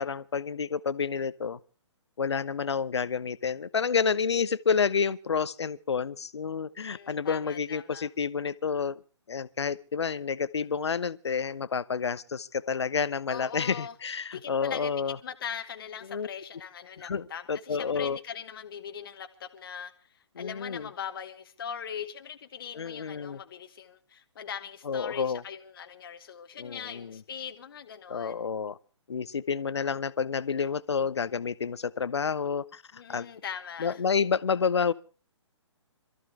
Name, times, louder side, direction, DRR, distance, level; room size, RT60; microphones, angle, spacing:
voice 1, 0.0-1.6 2.2-9.0 9.3-15.2 16.1-16.3 17.0-18.2 20.4-20.9 22.7-23.4 24.8-25.4 26.6-27.2 28.1-28.8 29.1-33.3 33.8-34.9, left 6 dB, 60° left, 0.8 m, -29 dB
voice 2, 6.8-8.1 13.3-13.9 14.3-14.9 15.2-19.9 20.4-28.4 32.9-34.0, left 8 dB, 45° left, 1.2 m, -40 dB
26.5 x 14.0 x 3.3 m
figure-of-eight pair, 130°, 16 cm